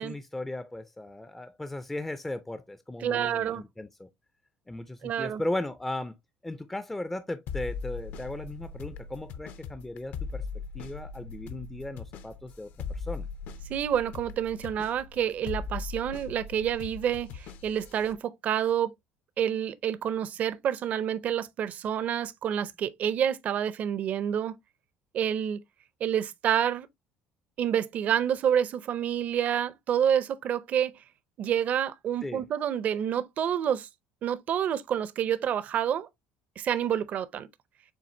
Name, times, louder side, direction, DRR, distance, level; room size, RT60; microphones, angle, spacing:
voice 1, 0.0-4.1 4.7-6.2 6.4-10.5 10.7-13.3 32.2-32.4, left 1 dB, 10° left, 0.4 m, -37 dB
voice 2, 3.0-3.6 5.0-5.4 13.7-18.9 19.4-24.5 25.1-25.6 26.0-26.9 27.6-30.9 31.4-33.9 34.2-36.1 36.6-37.5, right 9 dB, 45° right, 0.5 m, -28 dB
sound 1, 7.5-18.1, left 5 dB, 60° left, 0.7 m, -39 dB
7.2 x 2.5 x 2.6 m
cardioid pair, 130°, 4 cm